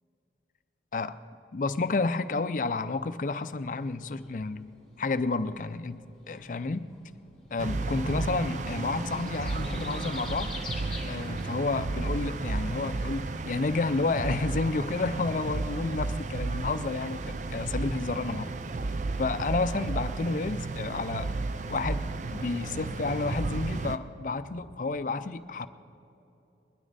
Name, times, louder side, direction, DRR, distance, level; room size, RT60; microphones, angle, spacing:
voice 1, 1.5-4.7 5.0-7.0 7.5-10.5 11.1-18.5 19.2-21.3 21.7-25.7, left 3 dB, 45° left, 12 dB, 0.4 m, -30 dB
sound 1, 3.8-18.3, left 2 dB, 5° left, 2.6 m, -49 dB
sound 2, 7.6-24.0, right 3 dB, 45° right, 0.4 m, -33 dB
21.0 x 12.5 x 4.0 m, 2.9 s
head